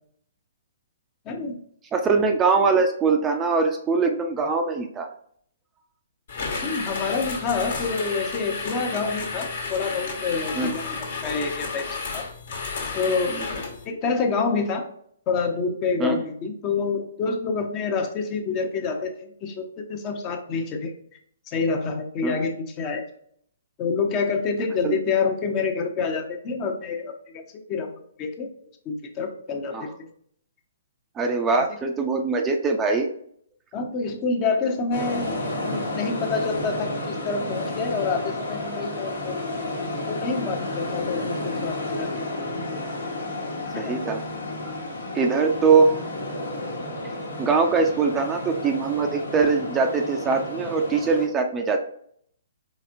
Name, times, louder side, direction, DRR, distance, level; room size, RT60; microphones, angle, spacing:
voice 1, 1.3-1.6 6.6-11.9 12.1-12.2 12.9-13.4 13.8-14.9 15.3-20.9 21.5-23.0 23.8-27.9 28.2-28.5 28.9-30.1 33.7-39.4 40.1-42.2 43.7-44.0, left 4 dB, 30° left, 4 dB, 0.7 m, -27 dB
voice 2, 1.9-5.1 10.5-10.7 13.3-13.4 16.0-16.2 22.2-22.3 24.8-25.0 29.7-29.8 31.2-33.1 43.8-44.2 44.6-44.7 45.1-45.9 47.4-51.8, right 4 dB, 15° right, 3 dB, 0.5 m, -22 dB
sound 1, 6.3-13.8, left 4 dB, 55° left, 1.2 m, -32 dB
sound 2, 34.9-51.3, left 1 dB, 70° left, 1.2 m, -31 dB
4.1 x 4.1 x 2.5 m, 0.65 s
figure-of-eight pair, 125°, 0 cm